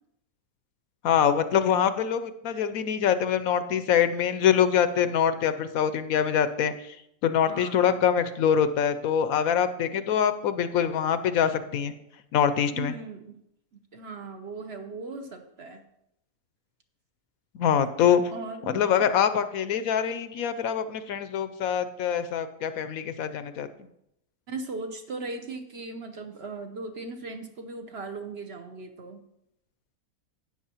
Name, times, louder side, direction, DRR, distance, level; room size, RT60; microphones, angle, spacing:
voice 1, 1.0-7.0 7.2-11.9 12.3-12.9 17.6-18.2 18.7-23.7, left 8 dB, 70° left, 11 dB, 1.0 m, -24 dB
voice 2, 7.5-8.0 12.8-13.4 13.7-15.8 18.3-18.8 24.5-29.2, right 3 dB, 55° right, 6 dB, 0.8 m, -38 dB
12.0 x 9.2 x 2.9 m, 0.80 s
omnidirectional pair, 1.6 m